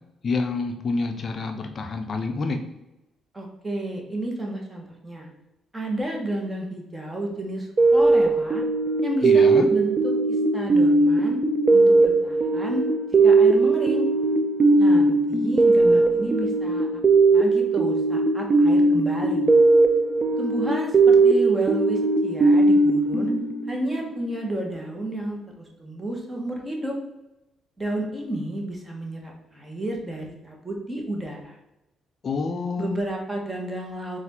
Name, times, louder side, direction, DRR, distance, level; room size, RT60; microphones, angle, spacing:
voice 1, 0.2-2.6 9.2-9.7 32.2-33.0, left 3 dB, 50° left, 5 dB, 0.4 m, -27 dB
voice 2, 3.3-5.3 5.7-8.6 9.0-11.4 11.7-12.9 13.2-14.1 14.8-16.9 17.3-19.5 20.4-23.3 23.7-27.0 27.8-31.6 32.8-34.2, right 1 dB, 15° right, 0 dB, 1.1 m, -31 dB
sound 1, 7.8-24.1, right 3 dB, 40° right, 0.4 m, -19 dB
4.1 x 2.5 x 4.1 m, 0.95 s
cardioid pair, 90°, 0 cm